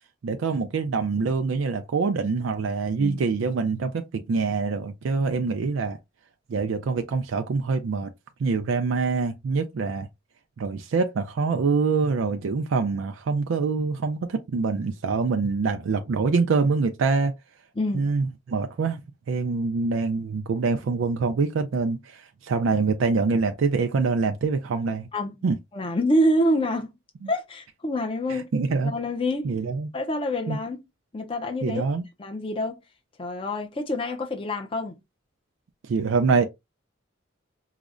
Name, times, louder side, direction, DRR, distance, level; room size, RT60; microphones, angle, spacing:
voice 1, 0.2-6.0 6.5-8.1 8.4-10.1 10.6-17.3 17.9-19.0 19.3-25.1 25.4-25.6 28.3-28.9 29.4-29.9 30.5-30.6 31.6-32.0 35.9-36.5, right 4 dB, 85° right, 0.4 m, -25 dB
voice 2, 17.8-18.1 25.1-25.4 25.7-26.9 27.3-28.5 28.8-29.6 29.9-30.8 31.1-31.9 32.2-32.8 33.2-35.0, left 1 dB, 25° left, 0.5 m, -26 dB
4.8 x 2.1 x 2.4 m
head